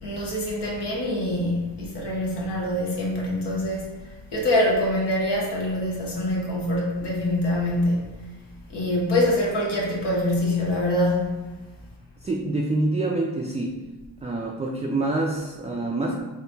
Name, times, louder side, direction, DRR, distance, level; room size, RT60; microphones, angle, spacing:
voice 1, 0.0-8.0 8.7-11.5, left 1 dB, 75° left, -4 dB, 1.0 m, -25 dB
voice 2, 12.2-13.9 14.2-16.2, right 2 dB, 20° right, 0 dB, 0.3 m, -26 dB
3.7 x 2.2 x 2.7 m, 1.2 s
supercardioid pair, 40°, 41 cm